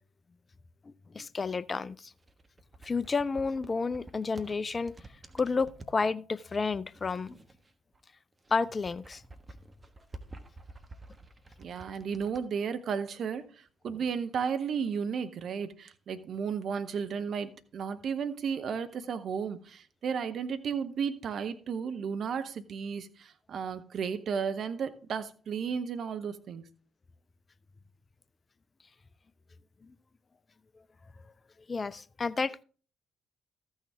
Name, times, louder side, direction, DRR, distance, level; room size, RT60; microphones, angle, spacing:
voice 1, 1.1-2.1 2.8-4.9 5.3-7.4 8.5-9.2 31.7-32.6, left 4 dB, 35° left, 0.5 m, -31 dB
sound 1, 2.1-6.0 6.7-8.0 8.3-12.4, right 2 dB, 30° right, 1.3 m, -50 dB
voice 2, 11.6-26.6, right 6 dB, 55° right, 0.8 m, -34 dB
14.0 x 6.4 x 3.6 m
figure-of-eight pair, 45°, 0 cm